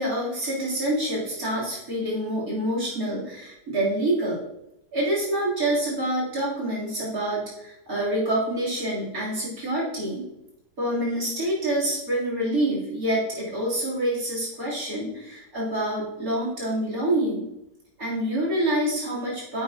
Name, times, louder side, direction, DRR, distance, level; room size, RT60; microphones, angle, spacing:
voice 1, 0.0-4.4 4.9-10.3 10.8-17.5 18.0-19.6, right 1 dB, 60° right, -5 dB, 3.9 m, -27 dB
9.7 x 8.6 x 2.9 m, 0.86 s
omnidirectional pair, 1.7 m